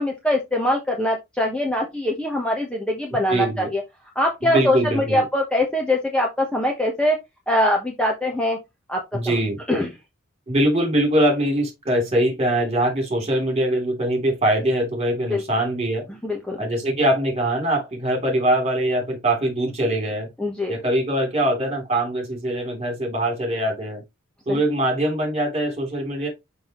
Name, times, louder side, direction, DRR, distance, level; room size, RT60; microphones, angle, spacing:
voice 1, 0.0-3.8 4.1-7.2 7.5-8.6 8.9-9.0 9.2-9.4 9.7-9.9 15.3-15.4 16.2-16.6 20.4-20.7 24.5-24.6, left 1 dB, 5° left, 1.1 m, -22 dB
voice 2, 3.3-3.7 4.4-5.2 9.1-9.6 10.5-16.1 16.6-20.3 20.7-24.0 24.4-26.3, right 1 dB, 30° right, 3.3 m, -22 dB
6.3 x 5.7 x 3.1 m
head